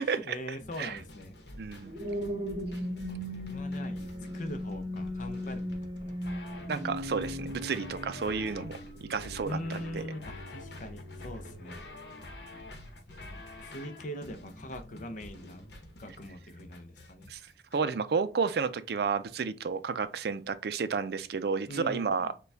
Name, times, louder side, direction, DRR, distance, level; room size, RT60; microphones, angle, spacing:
voice 1, 0.0-1.3 1.9-2.2 3.1-6.2 9.5-11.8 13.1-15.7 16.0-17.3 21.7-22.3, left 1 dB, 45° left, 0.6 m, -42 dB
sound 1, 0.6-17.8, left 2 dB, 70° left, 0.9 m, -48 dB
sound 2, 1.6-12.1 12.6-12.9, equal, 30° right, 0.9 m, -38 dB
voice 2, 1.6-1.9 6.7-8.8 9.1-9.8 17.3-17.4 17.7-22.3, right 5 dB, 60° right, 0.4 m, -31 dB
6.7 x 2.3 x 3.4 m
head